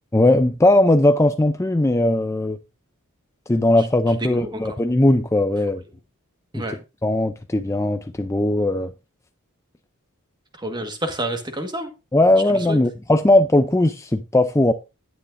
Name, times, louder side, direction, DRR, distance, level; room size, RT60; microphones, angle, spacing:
voice 1, 0.1-2.6 3.5-5.8 6.5-6.6 7.0-8.9 12.1-14.7, left 1 dB, 15° left, 0.5 m, -18 dB
voice 2, 4.2-4.8 6.5-6.8 10.6-11.9 12.5-12.8, right 1 dB, 20° right, 1.6 m, -29 dB
11.5 x 9.3 x 2.6 m
head